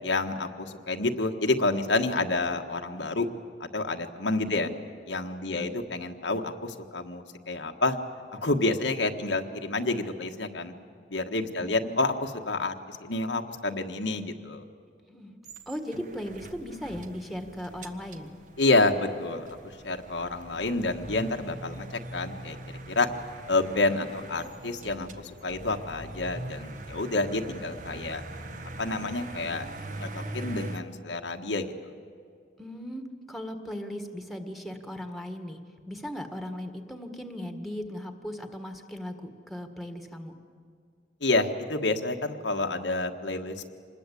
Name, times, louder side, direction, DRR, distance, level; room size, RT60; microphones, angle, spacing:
voice 1, 0.0-3.3 3.6-4.7 5.1-8.0 8.3-10.7 11.1-14.6 18.6-19.5 19.8-23.1 23.5-28.2 28.8-29.7 30.0-31.9 41.2-43.7, left 2 dB, 90° left, 4 dB, 1.6 m, -29 dB
voice 2, 11.6-12.0 15.1-15.4 15.6-18.3 32.6-35.6 35.9-40.3, equal, ahead, 6 dB, 1.7 m, -37 dB
sound 1, 15.4-30.8, right 1 dB, 45° right, 1.4 m, -42 dB
26.0 x 20.5 x 8.5 m, 2.2 s
head